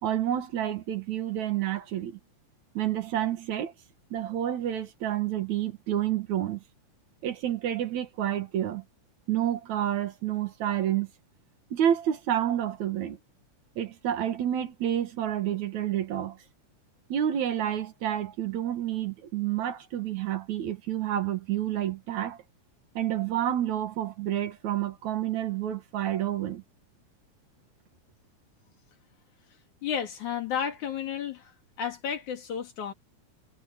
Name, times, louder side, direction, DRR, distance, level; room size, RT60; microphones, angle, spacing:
voice 1, 0.0-2.2 2.7-3.7 4.1-6.6 7.2-8.8 9.3-11.1 11.7-13.2 13.8-16.4 17.1-22.4 23.0-26.6, right 11 dB, 70° right, 2.8 m, -29 dB
voice 2, 29.8-31.5 31.8-32.9, left 8 dB, 70° left, 4.1 m, -32 dB
omnidirectional pair, 3.6 m